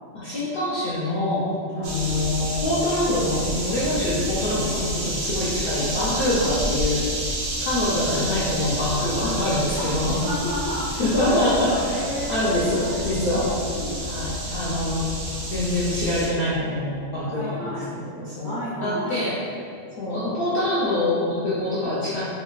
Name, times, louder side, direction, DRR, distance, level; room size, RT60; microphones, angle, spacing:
voice 1, 0.1-1.5 1.7-7.1 7.6-10.2 11.0-11.9 12.3-13.5 14.0-15.1 15.5-17.8 18.2-18.5 18.8-19.3 20.0-22.2, left 1 dB, 60° left, -9 dB, 0.6 m, -25 dB
voice 2, 1.7-2.2 9.8-14.0 17.4-18.0 18.4-19.2, equal, 40° right, -12 dB, 0.9 m, -31 dB
sound 1, 1.8-16.3, equal, 80° right, 0.9 m, -30 dB
3.0 x 2.3 x 2.3 m, 2.3 s
omnidirectional pair, 1.3 m